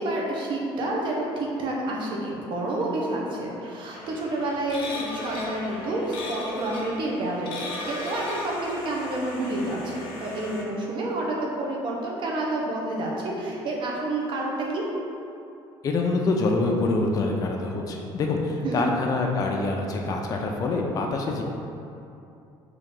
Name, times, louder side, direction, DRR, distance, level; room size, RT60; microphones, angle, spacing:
voice 1, 0.0-14.8 18.6-18.8, right 1 dB, 55° right, -2 dB, 0.8 m, -29 dB
sound 1, 3.9-10.6, left 1 dB, 60° left, 0.8 m, -37 dB
voice 2, 15.8-21.4, left 3 dB, 40° left, 1 dB, 0.4 m, -25 dB
3.8 x 2.7 x 3.7 m, 2.7 s
cardioid pair, 110°, 10 cm